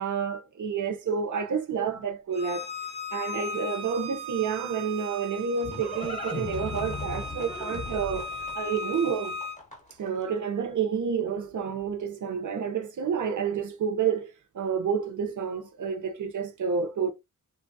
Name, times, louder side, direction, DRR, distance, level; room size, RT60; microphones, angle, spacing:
voice 1, 0.0-2.7 3.1-9.4 10.0-17.1, right 6 dB, 70° right, 0.7 m, -29 dB
Bowed string instrument, 2.3-9.6, left 1 dB, 20° right, 0.6 m, -37 dB
Livestock farm animals working animals, 5.0-10.1, left 3 dB, 25° left, 0.7 m, -37 dB
3.0 x 2.3 x 2.6 m
wide cardioid pair, 140°, 31 cm